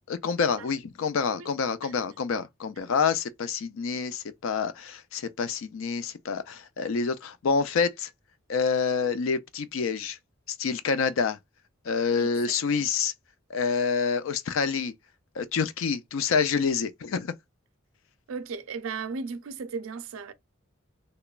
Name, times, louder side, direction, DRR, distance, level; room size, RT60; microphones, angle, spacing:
voice 1, 0.1-8.1 8.5-10.2 10.5-11.4 11.9-13.1 13.5-14.9 15.4-17.3, left 5 dB, 75° left, 0.4 m, -27 dB
voice 2, 18.3-20.3, right 5 dB, 90° right, 0.4 m, -35 dB
2.9 x 2.1 x 2.3 m
head